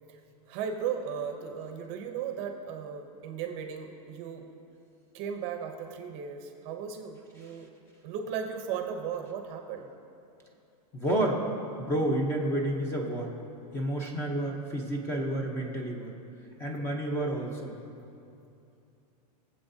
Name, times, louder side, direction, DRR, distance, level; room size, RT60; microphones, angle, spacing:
voice 1, 0.5-4.5 5.1-7.7 8.0-9.9, right 7 dB, 30° right, 4 dB, 0.8 m, -36 dB
voice 2, 10.9-11.4 11.8-13.3 13.7-16.1 16.6-17.7, right 1 dB, 10° left, 1 dB, 0.8 m, -30 dB
22.5 x 7.7 x 2.7 m, 2.7 s
supercardioid pair, 170°, 21 cm